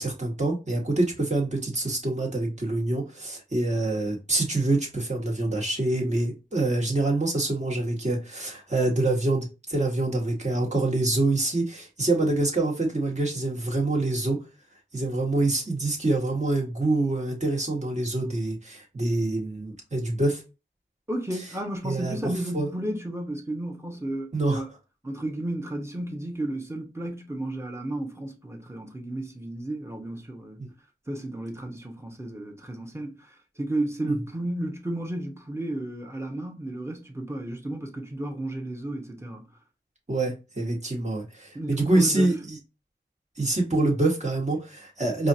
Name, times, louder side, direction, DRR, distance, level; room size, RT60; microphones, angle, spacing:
voice 1, 0.0-14.4 14.9-20.4 21.8-22.2 22.5-22.7 24.3-24.6 30.6-30.7 40.1-42.6 43.4-45.3, right 2 dB, 35° right, 1.8 m, -26 dB
voice 2, 21.1-24.7 25.0-30.6 31.1-39.4 41.5-42.3, right 1 dB, 15° right, 1.2 m, -33 dB
4.9 x 2.5 x 2.8 m
wide cardioid pair, 45°, 20 cm